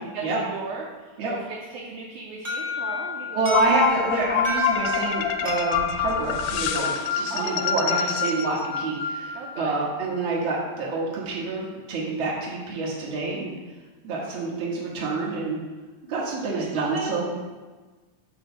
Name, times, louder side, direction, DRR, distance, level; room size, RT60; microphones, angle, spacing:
voice 1, 0.0-3.5 7.3-8.1 9.4-9.8 16.5-17.1, right 4 dB, 75° right, -1 dB, 1.9 m, -36 dB
Alarm, 2.4-7.2, left 1 dB, 5° right, 1.6 m, -32 dB
voice 2, 3.3-13.5 14.0-15.6 16.1-17.4, right 3 dB, 55° right, -4 dB, 1.4 m, -27 dB
sound 1, 3.5-9.6, left 8 dB, 90° left, 2.4 m, -26 dB
7.9 x 3.3 x 5.8 m, 1.3 s
omnidirectional pair, 4.1 m